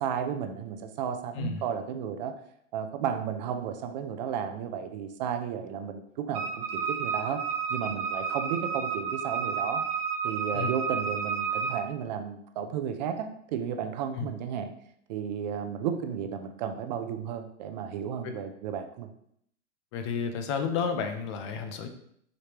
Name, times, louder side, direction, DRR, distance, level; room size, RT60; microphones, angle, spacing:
voice 1, 0.0-2.3 2.7-7.4 7.7-9.8 10.2-14.7 15.1-19.1, right 8 dB, 40° right, 7 dB, 0.5 m, -33 dB
Wind instrument woodwind instrument, 6.3-11.8, right 6 dB, 15° right, 1.0 m, -31 dB
voice 2, 19.9-21.9, left 6 dB, 25° left, 7 dB, 0.3 m, -31 dB
5.0 x 3.1 x 2.9 m, 0.71 s
hypercardioid pair, 145°, 36 cm